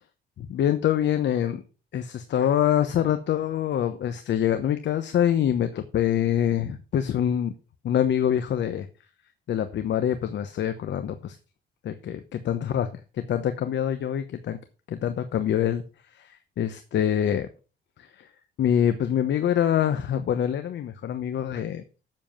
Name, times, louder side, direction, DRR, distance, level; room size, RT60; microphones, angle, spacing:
voice 1, 0.4-1.6 1.9-7.5 7.8-8.9 9.5-11.4 11.8-12.9 13.3-14.6 14.9-15.8 16.2-17.5 18.0-18.1 18.6-21.8, left 10 dB, 65° left, 9 dB, 1.0 m, -25 dB
7.7 x 7.0 x 5.8 m, 0.34 s
cardioid pair, 90°, 20 cm